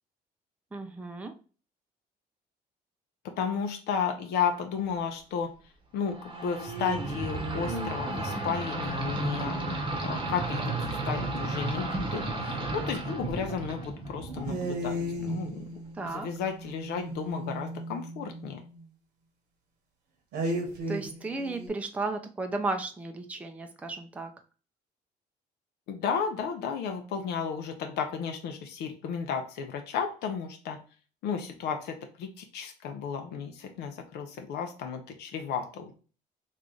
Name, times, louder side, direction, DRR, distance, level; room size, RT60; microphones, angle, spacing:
voice 1, 0.7-1.3 15.9-16.3 20.9-24.3, right 3 dB, 10° right, 5 dB, 0.4 m, -34 dB
voice 2, 3.4-5.5 5.9-9.6 10.0-15.6 16.1-18.6 25.9-30.8 31.2-35.9, left 6 dB, 75° left, 5 dB, 0.6 m, -33 dB
sound 1, 6.1-15.5, right 2 dB, 30° right, 0.9 m, -33 dB
sound 2, 6.3-9.1 14.4-18.8 20.3-21.7, right 1 dB, 85° right, 1.1 m, -36 dB
3.1 x 2.5 x 3.7 m, 0.37 s
cardioid pair, 110°, 17 cm